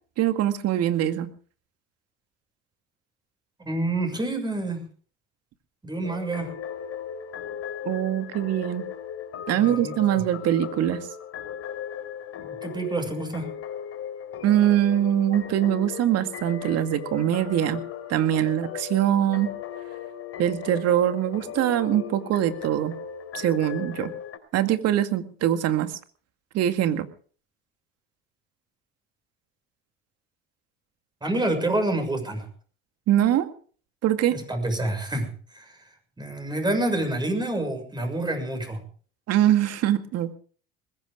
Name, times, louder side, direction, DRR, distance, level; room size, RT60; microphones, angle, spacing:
voice 1, 0.2-1.3 7.8-8.9 9.5-11.1 14.4-17.8 18.1-19.5 20.4-22.9 23.3-24.1 24.5-25.9 26.5-27.1 33.1-33.5 34.0-34.4 39.3-40.3, right 11 dB, 55° right, 9 dB, 2.1 m, -23 dB
voice 2, 3.6-4.8 5.8-6.5 9.5-9.9 12.4-13.5 31.2-32.4 34.3-35.7 36.2-38.8, right 2 dB, 15° right, 5 dB, 6.7 m, -28 dB
sound 1, 6.0-24.4, left 9 dB, 50° left, 3.9 m, -37 dB
21.0 x 16.0 x 3.7 m, 0.43 s
hypercardioid pair, 80°, 30 cm